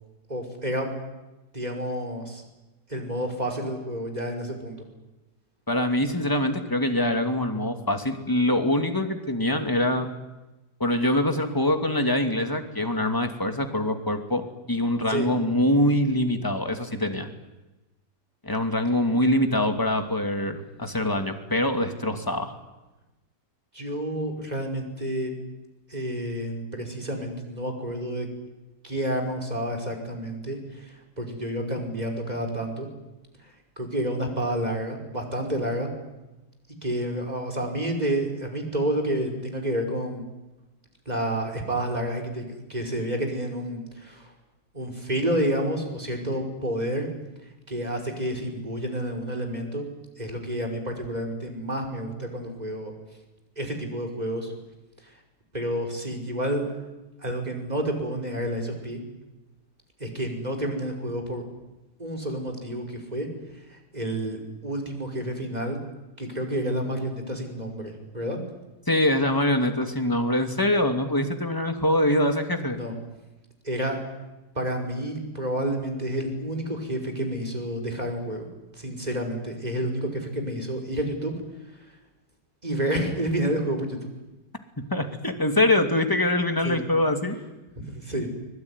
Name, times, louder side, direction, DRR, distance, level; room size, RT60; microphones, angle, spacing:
voice 1, 0.3-0.9 1.5-2.4 2.9-4.9 15.1-15.3 23.7-25.3 25.9-28.3 28.8-32.9 33.4-35.9 36.8-40.2 41.1-44.3 44.7-47.1 47.7-49.9 50.2-52.9 53.6-54.5 55.5-56.6 57.2-59.0 60.0-61.4 62.0-63.3 63.7-65.8 66.2-68.4 72.7-72.9 73.6-74.0 74.6-78.4 78.7-81.3 82.6-84.0 86.6-86.8 87.8-88.3, right 1 dB, 25° right, 3 dB, 5.5 m, -29 dB
voice 2, 5.7-10.1 10.8-17.3 18.4-22.5 68.9-72.8 84.9-87.4, left 1 dB, 10° left, 6 dB, 2.6 m, -24 dB
24.0 x 22.5 x 9.9 m, 1.0 s
omnidirectional pair, 1.8 m